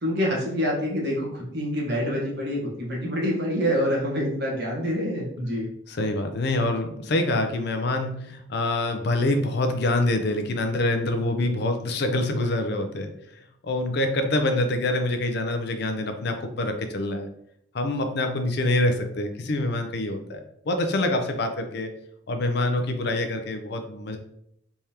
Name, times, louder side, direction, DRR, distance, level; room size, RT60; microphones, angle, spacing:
voice 1, 0.0-5.7, equal, 55° right, -2 dB, 1.2 m, -26 dB
voice 2, 5.9-13.1 13.6-17.3 17.7-20.4 20.7-21.9 22.3-24.2, left 2 dB, 55° left, 6 dB, 0.5 m, -25 dB
3.5 x 3.3 x 2.8 m, 0.73 s
head